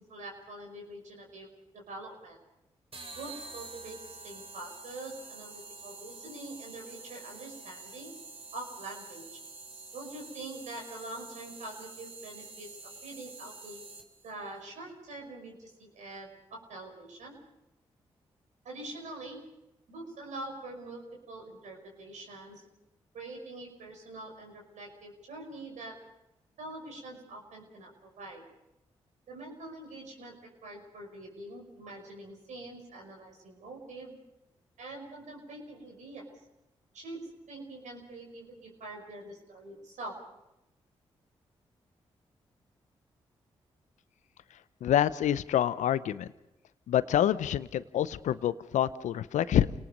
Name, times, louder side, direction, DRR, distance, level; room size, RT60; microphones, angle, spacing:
voice 1, 0.1-1.5 1.7-2.4 3.1-8.1 8.5-9.2 9.9-13.8 14.2-17.4 18.6-19.4 19.9-22.6 23.1-25.9 26.6-28.4 29.3-34.1 34.8-36.4 36.9-37.2 37.5-40.2, right 2 dB, 75° right, 1 dB, 5.7 m, -44 dB
sound 1, 2.9-14.3, right 3 dB, 50° right, 3.0 m, -47 dB
voice 2, 44.8-46.3 46.9-49.7, left 11 dB, 75° left, 16 dB, 0.7 m, -27 dB
29.0 x 19.0 x 5.4 m, 0.91 s
hypercardioid pair, 40°, 13 cm